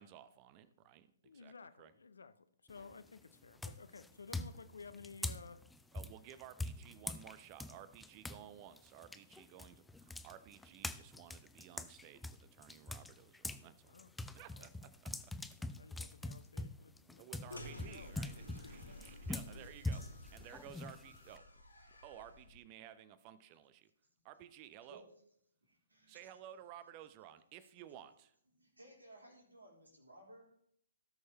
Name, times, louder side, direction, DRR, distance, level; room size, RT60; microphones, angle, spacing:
voice 1, 0.0-1.9 5.9-13.9 14.3-15.3 17.2-21.5 22.0-23.9 24.2-25.1 26.1-28.3, right 11 dB, 25° right, 14 dB, 0.7 m, -55 dB
voice 2, 1.2-5.6 13.8-14.1 14.6-14.7 15.6-18.1 18.5-19.3, left 4 dB, 65° left, 12 dB, 0.7 m, -55 dB
sound 1, 2.7-3.1 3.6-8.4 8.8-13.6 14.0-21.4, left 2 dB, 5° left, 0.3 m, -44 dB
sound 2, 17.5-22.6, left 1 dB, 80° left, 3.0 m, -53 dB
voice 3, 25.6-26.3 28.5-30.5, right 1 dB, 80° right, -2 dB, 3.8 m, -59 dB
17.5 x 6.5 x 3.0 m, 0.70 s
figure-of-eight pair, 125°, 0 cm